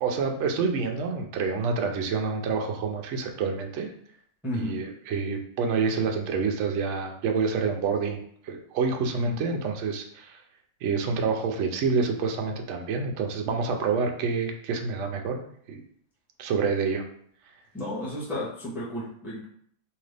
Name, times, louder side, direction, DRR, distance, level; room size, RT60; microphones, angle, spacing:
voice 1, 0.0-3.9 4.6-10.4 10.8-15.4 15.7-15.8 16.4-17.0, right 5 dB, 65° right, 3 dB, 0.8 m, -27 dB
voice 2, 4.4-4.8 9.1-9.4 17.7-19.5, left 1 dB, ahead, -8 dB, 1.0 m, -33 dB
3.7 x 2.8 x 3.3 m, 0.63 s
omnidirectional pair, 1.6 m